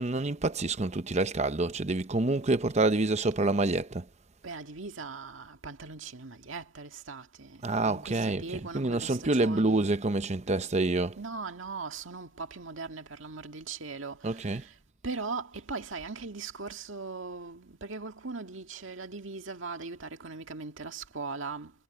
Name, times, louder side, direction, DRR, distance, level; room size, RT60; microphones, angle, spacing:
voice 1, 0.0-4.0 7.6-11.2 14.2-14.6, right 2 dB, 35° right, 0.9 m, -27 dB
voice 2, 4.4-9.9 11.2-14.7 15.0-21.7, right 4 dB, 80° right, 1.9 m, -40 dB
head